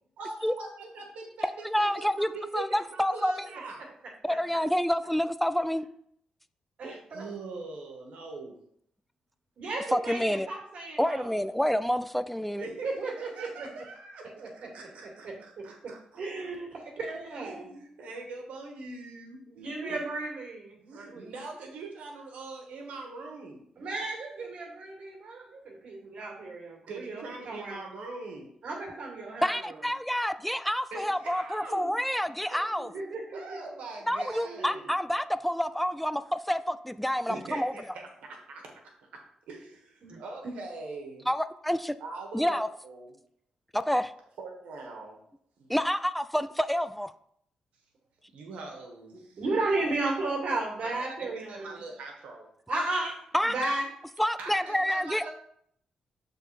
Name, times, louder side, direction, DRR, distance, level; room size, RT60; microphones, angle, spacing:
voice 1, 0.2-3.9 7.1-8.6 12.5-16.2 17.4-20.0 20.8-23.9 26.9-28.5 30.9-31.9 32.5-34.9 37.3-38.7 39.5-41.3 42.0-43.1 44.4-45.2 45.6-45.7 48.3-49.4 50.0-50.2 50.8-52.5 54.4-55.3, right 3 dB, 85° right, 1 dB, 1.6 m, -42 dB
voice 2, 1.6-3.3 4.2-5.9 9.9-10.5 11.0-12.6 29.4-32.9 34.1-37.7 41.3-41.9 42.3-42.7 43.7-44.1 45.7-47.1 53.3-53.5 54.2-55.3, equal, 5° left, 13 dB, 0.3 m, -28 dB
voice 3, 6.8-7.3 9.6-11.3 12.8-13.8 14.4-14.5 15.0-17.7 19.5-21.3 23.8-27.8 28.6-29.8 32.9-33.6 34.4-34.9 40.0-40.2 40.4-40.5 49.4-51.8 52.7-53.1 53.4-53.9, right 2 dB, 65° right, -1 dB, 2.1 m, -34 dB
7.0 x 3.8 x 4.2 m, 0.69 s
cardioid pair, 90°, 2 cm